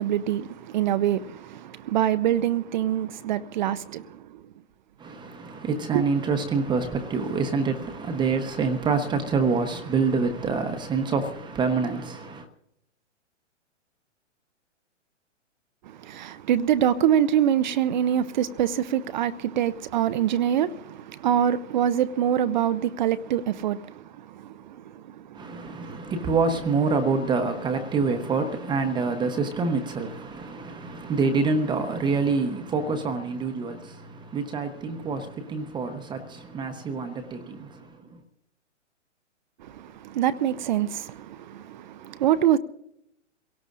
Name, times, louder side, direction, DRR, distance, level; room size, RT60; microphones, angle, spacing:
voice 1, 0.0-4.4 5.9-6.0 15.9-26.0 39.6-42.6, right 10 dB, 40° right, 0.5 m, -25 dB
voice 2, 5.0-12.5 25.3-38.2, right 4 dB, 10° right, 0.9 m, -26 dB
28.0 x 17.5 x 2.5 m
hypercardioid pair, 125°, 37 cm